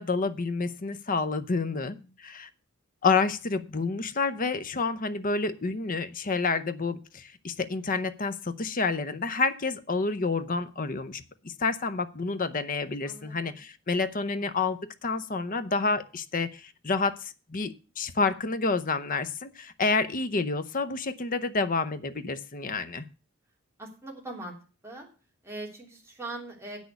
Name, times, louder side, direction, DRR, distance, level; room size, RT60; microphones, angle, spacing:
voice 1, 0.0-2.5 3.0-23.0, left 4 dB, 40° left, 12 dB, 0.8 m, -29 dB
voice 2, 1.6-2.1 13.0-13.6 23.8-24.5 24.8-25.1 25.4-26.9, right 2 dB, 15° right, -1 dB, 3.0 m, -41 dB
8.4 x 6.4 x 8.1 m, 0.35 s
head